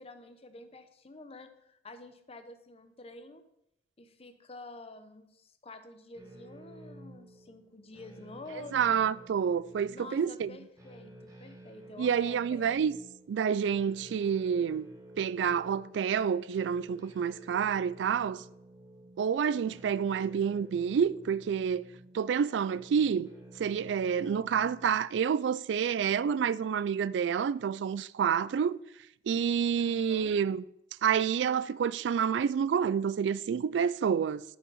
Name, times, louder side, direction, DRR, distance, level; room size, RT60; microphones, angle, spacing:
voice 1, 0.0-3.4 4.0-8.8 9.9-12.8 29.7-30.3, left 2 dB, 35° left, 0.8 m, -49 dB
sound 1, 6.1-25.0, right 1 dB, 20° right, 1.8 m, -52 dB
voice 2, 8.7-10.5 12.0-13.0 13.3-14.9 15.2-18.4 19.2-21.8 22.1-23.3 23.6-28.8 29.3-30.6 31.0-34.4, right 7 dB, 85° right, 0.3 m, -28 dB
8.1 x 5.8 x 5.5 m
head